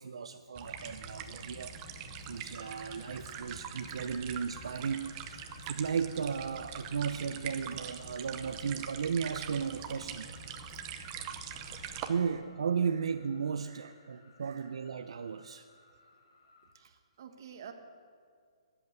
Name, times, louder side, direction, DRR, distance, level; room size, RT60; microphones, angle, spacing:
voice 1, 0.0-1.8 2.3-10.3 11.6-15.7, right 6 dB, 70° right, 9 dB, 0.6 m, -35 dB
sound 1, 0.5-12.1, left 3 dB, 75° left, 3.1 m, -51 dB
sound 2, 0.5-12.1, right 10 dB, 20° right, 0.7 m, -44 dB
sound 3, 2.5-16.7, left 3 dB, 60° left, 2.5 m, -61 dB
voice 2, 10.7-11.1 12.1-12.4 12.9-13.1 13.6-14.7 16.7-17.7, right 8 dB, 40° right, 6 dB, 1.4 m, -53 dB
21.5 x 8.1 x 8.0 m, 2.1 s
hypercardioid pair, 175°, 3 cm